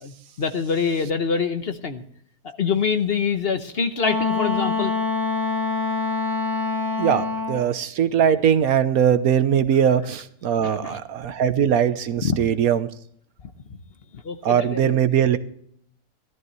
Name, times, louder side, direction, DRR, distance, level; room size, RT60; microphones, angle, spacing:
voice 1, 0.0-2.0 2.4-4.9 10.6-11.0 12.2-12.4 14.1-15.0, left 6 dB, 50° left, 8 dB, 1.0 m, -25 dB
Wind instrument woodwind instrument, 4.0-7.7, left 3 dB, 85° left, 3.1 m, -25 dB
voice 2, 7.0-12.9 14.4-15.4, right 8 dB, 80° right, 12 dB, 1.3 m, -20 dB
17.5 x 13.0 x 3.2 m, 0.63 s
omnidirectional pair, 1.5 m